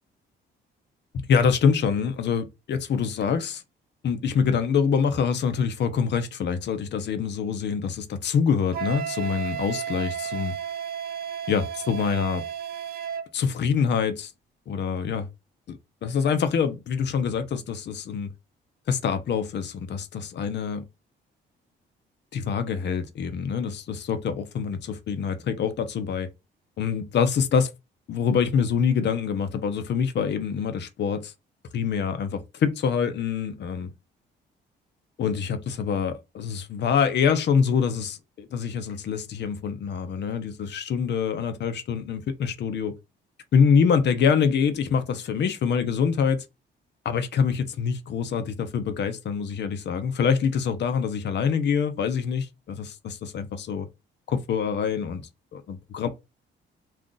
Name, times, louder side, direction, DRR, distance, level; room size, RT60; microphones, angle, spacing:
voice 1, 1.1-3.6 4.0-10.6 11.5-12.4 13.3-14.3 14.7-15.3 15.7-18.3 18.9-20.8 22.3-26.3 26.8-27.7 28.1-31.3 31.7-33.9 35.2-42.9 43.5-46.4 47.0-53.9 54.3-56.1, left 6 dB, 60° left, 0.8 m, -25 dB
Wind instrument woodwind instrument, 8.7-13.3, right 8 dB, 50° right, 0.5 m, -33 dB
2.5 x 2.4 x 3.8 m
cardioid pair, 90°, 20 cm